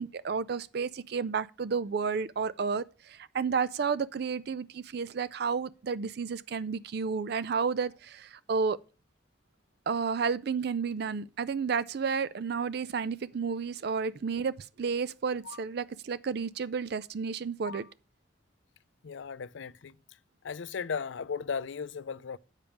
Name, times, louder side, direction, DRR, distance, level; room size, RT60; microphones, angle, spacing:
voice 1, 0.0-8.8 9.9-17.9, right 5 dB, 55° right, 0.4 m, -31 dB
voice 2, 19.0-20.0 20.4-22.4, left 6 dB, 70° left, 0.5 m, -36 dB
8.2 x 5.2 x 7.1 m
head